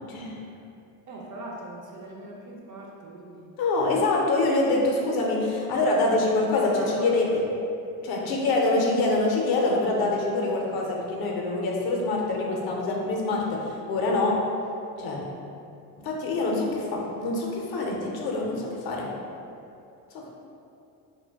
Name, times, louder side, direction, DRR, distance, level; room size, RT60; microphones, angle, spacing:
voice 1, 0.1-0.4 3.6-7.4 8.0-14.4 15.0-15.3 16.0-19.1 20.1-20.3, left 2 dB, 50° left, -1 dB, 0.6 m, -25 dB
voice 2, 1.1-3.5 6.7-7.2 8.2-8.3, right 2 dB, 40° right, -3 dB, 0.4 m, -40 dB
2.2 x 2.2 x 3.3 m, 2.7 s
supercardioid pair, 95°, 49 cm